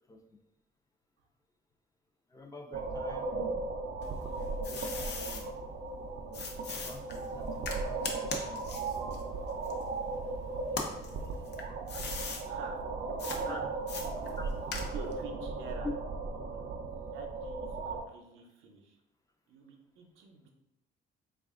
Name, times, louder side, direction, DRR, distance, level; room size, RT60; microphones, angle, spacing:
voice 1, 2.3-3.3 4.6-5.5 6.8-8.6 13.4-13.6 14.4-14.5, left 2 dB, 15° left, 3 dB, 0.5 m, -49 dB
sound 1, 2.7-18.0, right 3 dB, 50° right, 0.5 m, -37 dB
sound 2, 4.0-5.4 6.3-10.2 10.7-12.4 13.2-13.4 13.9-15.2, left 4 dB, 60° left, 0.6 m, -40 dB
voice 2, 12.5-12.8 13.5-15.9 17.1-19.0 19.5-20.5, right 3 dB, 90° right, 2 dB, 0.6 m, -48 dB
3.4 x 2.4 x 3.6 m, 0.85 s
cardioid pair, 90°, 20 cm